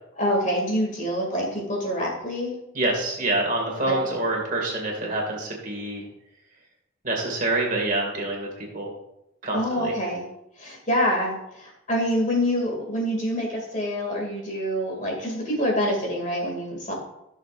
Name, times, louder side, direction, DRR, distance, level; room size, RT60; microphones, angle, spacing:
voice 1, 0.2-2.6 3.9-4.0 9.5-10.2 10.6-16.9, equal, 35° left, -1 dB, 2.3 m, -26 dB
voice 2, 2.7-6.1 7.0-8.5 8.7-8.9 9.4-10.0, right 2 dB, 40° right, 0 dB, 2.1 m, -26 dB
15.5 x 6.4 x 2.5 m, 0.86 s
head